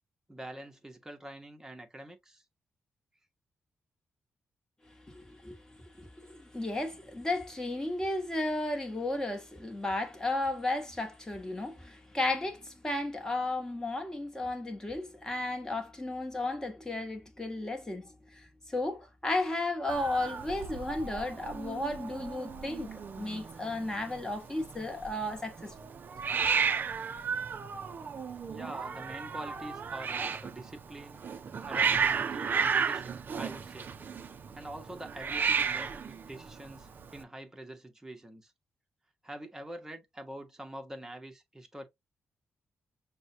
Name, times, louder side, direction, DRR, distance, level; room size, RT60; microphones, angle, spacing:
voice 1, 0.3-2.4 28.5-31.2 31.7-33.9 34.5-38.5 39.2-41.8, right 1 dB, 10° right, 0.9 m, -45 dB
voice 2, 5.1-5.6 6.0-25.7, left 2 dB, 10° left, 1.1 m, -34 dB
Hiss, 19.9-37.2, right 6 dB, 40° right, 0.5 m, -34 dB
6.2 x 2.2 x 2.7 m
wide cardioid pair, 145°, 5 cm